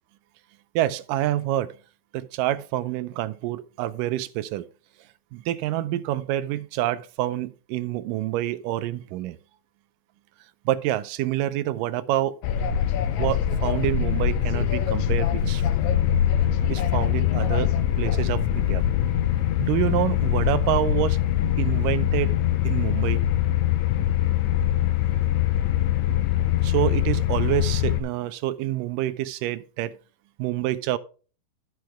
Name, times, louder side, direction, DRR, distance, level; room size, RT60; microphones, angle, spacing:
voice 1, 0.8-1.7 2.1-4.7 5.3-9.4 10.7-12.4 13.2-15.6 16.7-17.7 18.0-18.8 19.6-21.2 21.6-22.3 22.6-23.3 26.6-29.9 30.4-31.0, right 14 dB, 85° right, 2.2 m, -27 dB
sound 1, 12.4-28.0, left 10 dB, 70° left, 1.9 m, -23 dB
13.0 x 6.3 x 3.5 m
omnidirectional pair, 3.9 m